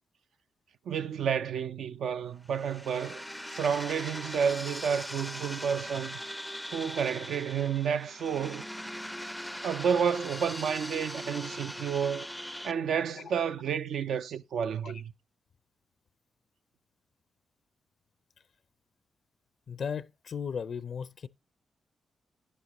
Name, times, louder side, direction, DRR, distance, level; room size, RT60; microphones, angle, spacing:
voice 1, 0.9-3.2 3.5-6.2 6.7-8.7 9.6-12.3 12.6-15.1, right 7 dB, 85° right, 0.6 m, -30 dB
sound 1, 2.4-12.7, equal, 5° left, 0.4 m, -40 dB
voice 2, 19.7-21.3, left 6 dB, 65° left, 0.5 m, -36 dB
10.0 x 9.7 x 3.0 m
cardioid pair, 80°, 0 cm